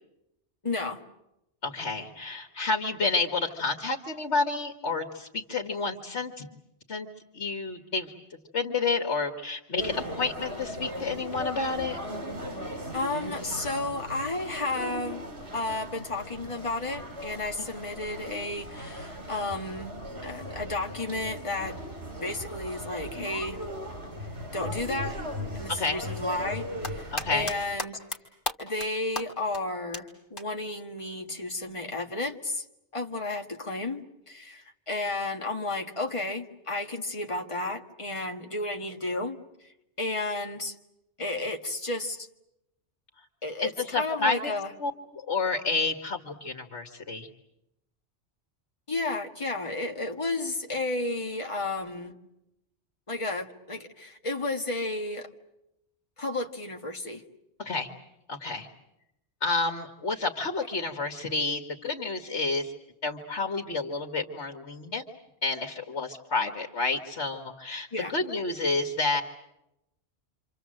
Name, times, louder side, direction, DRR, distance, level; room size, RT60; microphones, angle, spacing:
voice 1, 0.6-1.0 12.9-15.2 15.5-20.0 20.2-21.8 22.2-23.6 24.5-25.2 25.5-28.0 28.6-32.6 32.9-39.4 40.0-40.7 41.2-42.3 43.4-44.7 48.9-52.1 53.1-55.3 56.2-57.2 67.9-68.1, left 2 dB, 25° left, 3 dB, 1.7 m, -32 dB
voice 2, 1.6-6.5 6.9-7.1 7.3-8.1 8.5-12.0 25.7-26.0 27.1-27.5 43.6-44.5 44.8-47.3 57.6-57.9 58.3-58.7 59.4-62.7 63.0-65.0 65.4-69.2, left 3 dB, 80° left, 5 dB, 2.0 m, -30 dB
sound 1, 9.8-27.8, equal, 65° right, 3.2 m, -38 dB
sound 2, 26.6-27.5 27.8-28.2 28.5-28.9 29.2-29.3 29.5-29.6 29.9-30.0 30.4-30.5 32.0-32.1, left 1 dB, 50° left, 3.2 m, -32 dB
27.5 x 27.0 x 7.8 m, 0.87 s
omnidirectional pair, 1.2 m